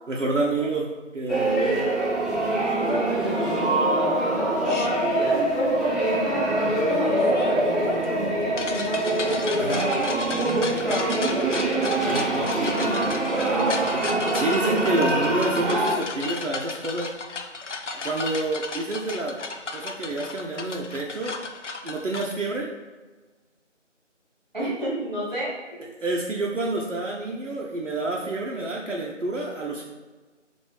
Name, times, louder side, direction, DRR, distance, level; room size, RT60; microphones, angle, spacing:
voice 1, 0.1-1.9 9.6-9.9 12.0-14.0 14.3-17.1 17.9-19.4 19.7-21.4 21.8-22.7 26.0-29.8, right 2 dB, 75° right, -2 dB, 0.7 m, -28 dB
sound 1, 1.3-15.9, right 2 dB, ahead, 0.5 m, -24 dB
voice 2, 2.7-12.0 24.5-25.5, right 1 dB, 35° right, -6 dB, 1.3 m, -30 dB
sound 2, 4.6-4.9 6.9-22.3, left 4 dB, 70° left, 0.5 m, -34 dB
4.5 x 2.6 x 3.2 m, 1.3 s
figure-of-eight pair, 170°, 37 cm